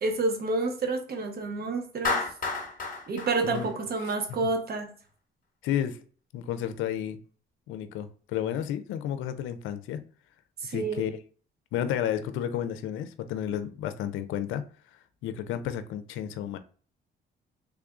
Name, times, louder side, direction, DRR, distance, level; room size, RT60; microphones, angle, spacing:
voice 1, 0.0-2.2 3.1-4.9 10.6-11.1, right 3 dB, 50° right, 0.9 m, -29 dB
Clapping, 2.0-4.3, left 3 dB, 45° left, 1.1 m, -31 dB
voice 2, 5.6-6.0 6.3-7.2 7.7-10.0 10.7-11.2 11.7-14.6 15.2-16.6, left 10 dB, 90° left, 0.4 m, -31 dB
3.4 x 2.3 x 3.6 m
cardioid pair, 90°, 20 cm